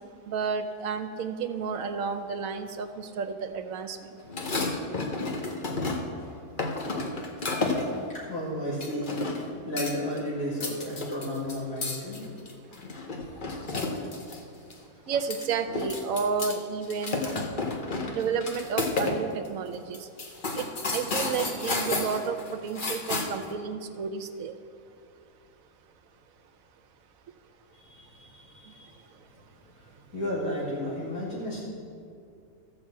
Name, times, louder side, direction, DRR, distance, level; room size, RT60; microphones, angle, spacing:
voice 1, 0.3-4.0 15.1-17.3 18.1-20.1 20.5-24.5, right 5 dB, 65° right, 7 dB, 1.0 m, -31 dB
sound 1, 4.2-6.2 6.6-8.0 8.8-9.5 9.8-10.2 10.5-14.4 14.7-14.8 15.1-16.6 16.8-19.2 19.4-19.5 19.9-23.5, left 3 dB, 40° left, 0.9 m, -31 dB
voice 2, 8.1-9.1 9.3-12.2 27.8-29.0 29.8-31.7, left 1 dB, 55° left, -7 dB, 2.9 m, -33 dB
13.5 x 4.8 x 7.4 m, 2.4 s
omnidirectional pair, 1.7 m